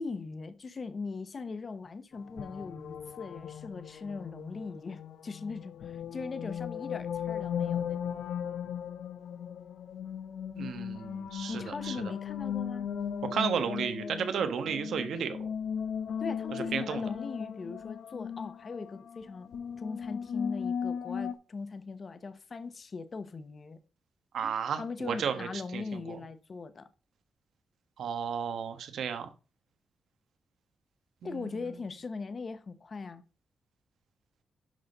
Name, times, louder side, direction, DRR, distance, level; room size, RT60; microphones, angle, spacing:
voice 1, 0.0-8.0 11.5-12.9 16.2-19.5 19.8-23.8 24.7-26.9 31.2-33.2, left 4 dB, 35° left, 0.9 m, -40 dB
sound 1, 2.1-21.3, left 8 dB, 70° left, 0.8 m, -37 dB
voice 2, 10.6-12.0 13.3-15.5 16.7-17.0 24.3-26.2 28.0-29.3 31.2-31.7, right 7 dB, 75° right, 1.2 m, -33 dB
11.5 x 4.2 x 5.4 m
wide cardioid pair, 170°, 0 cm